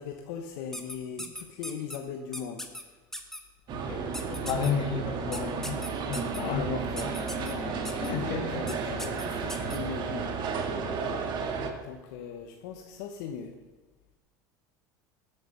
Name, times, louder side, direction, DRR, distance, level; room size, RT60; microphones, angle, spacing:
voice 1, 0.0-2.6 6.3-8.0 8.3-10.3 11.8-13.5, left 6 dB, 75° left, 3 dB, 1.1 m, -39 dB
sound 1, 0.7-2.0 2.3-2.8 3.1-3.4 4.1-4.7 5.3-6.4 7.0-7.5 7.8-8.1 8.7-8.8 9.0-9.8, left 1 dB, 5° left, 1.4 m, -38 dB
sound 2, 3.7-11.7, right 5 dB, 50° right, 2.0 m, -33 dB
voice 2, 3.9-6.7 8.0-8.6, left 6 dB, 55° left, 4 dB, 2.0 m, -32 dB
16.0 x 7.2 x 5.6 m, 1.2 s
hypercardioid pair, 90°, 10 cm